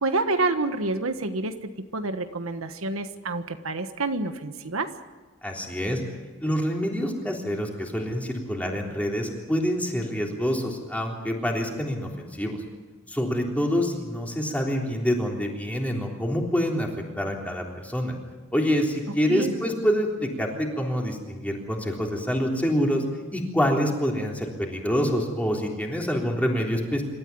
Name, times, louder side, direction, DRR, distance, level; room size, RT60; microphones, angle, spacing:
voice 1, 0.0-4.9 19.3-19.5, right 2 dB, 80° right, 8 dB, 1.4 m, -28 dB
voice 2, 5.4-6.0 6.4-12.6 13.1-16.9 17.2-18.1 18.5-23.0 23.3-27.0, equal, 5° left, 0 dB, 3.6 m, -26 dB
27.0 x 13.5 x 9.6 m, 1.3 s
head